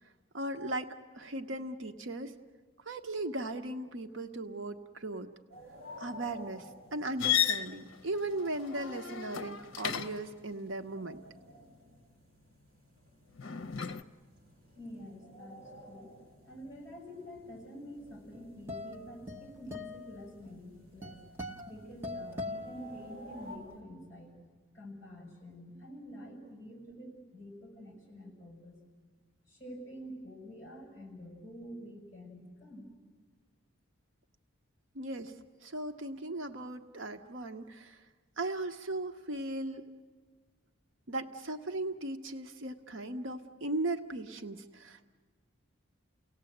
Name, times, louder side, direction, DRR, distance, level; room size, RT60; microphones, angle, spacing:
voice 1, 0.3-2.3 2.8-5.3 6.0-11.2 34.9-35.4 35.6-38.0 38.4-39.9 41.1-45.1, right 2 dB, 65° right, 6 dB, 0.8 m, -37 dB
sound 1, 5.5-23.6, left 1 dB, 40° right, 6.3 m, -54 dB
sound 2, 7.2-10.4 13.4-14.0, left 9 dB, 65° left, 0.7 m, -33 dB
voice 2, 14.8-15.6 15.9-16.2 16.4-21.1 21.6-24.4 24.7-28.8 29.5-32.9, equal, 15° left, 0 dB, 6.8 m, -47 dB
sound 3, 18.1-23.5, left 2 dB, 10° right, 1.0 m, -43 dB
29.5 x 18.0 x 7.8 m, 1.5 s
head